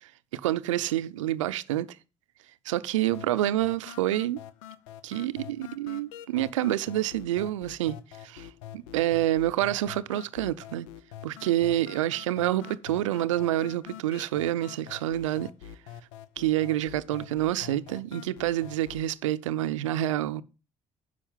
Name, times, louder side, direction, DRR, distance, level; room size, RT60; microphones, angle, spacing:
voice 1, 0.3-1.9 2.7-4.4 5.0-8.0 8.2-8.5 8.7-10.9 11.2-15.5 16.4-20.4, right 14 dB, 85° right, 0.6 m, -28 dB
sound 1, 3.1-19.1, left 11 dB, 80° left, 0.8 m, -45 dB
10.0 x 6.3 x 7.2 m
hypercardioid pair, 50°, 16 cm